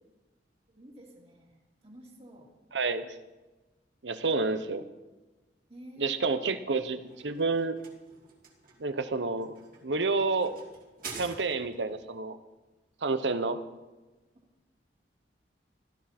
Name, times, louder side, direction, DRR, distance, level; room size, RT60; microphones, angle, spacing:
voice 1, 0.7-2.5 5.7-6.4, equal, 35° right, 0 dB, 2.5 m, -51 dB
voice 2, 2.7-3.1 4.0-4.8 6.0-7.8 8.8-9.5 9.8-10.5 11.2-12.4 13.0-13.6, right 3 dB, 80° right, 10 dB, 0.9 m, -29 dB
sound 1, 6.8-11.9, right 4 dB, 55° right, 2.7 m, -47 dB
16.5 x 13.0 x 4.3 m, 1.1 s
head